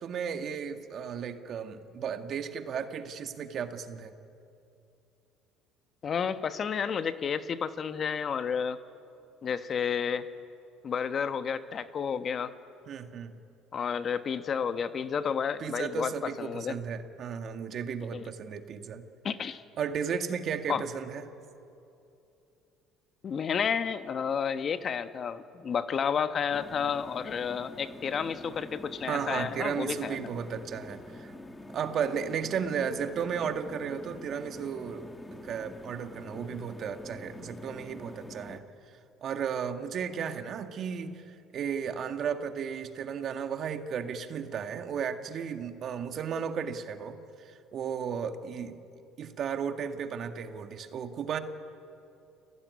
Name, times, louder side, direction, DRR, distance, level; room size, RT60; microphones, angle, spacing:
voice 1, 0.0-4.1 12.9-13.3 15.6-19.1 19.8-21.2 29.1-31.3 31.7-35.1 35.4-38.6 39.2-48.8 49.2-51.4, right 7 dB, 50° right, 7 dB, 1.9 m, -34 dB
voice 2, 6.0-8.8 9.4-10.2 10.8-12.5 13.7-16.8 18.1-18.2 19.2-19.6 20.7-20.8 23.2-30.2, left 7 dB, 45° left, 10 dB, 1.2 m, -31 dB
sound 1, 26.5-38.6, left 1 dB, 10° left, 2.1 m, -46 dB
29.5 x 16.5 x 9.6 m, 2.7 s
supercardioid pair, 85°, 0 cm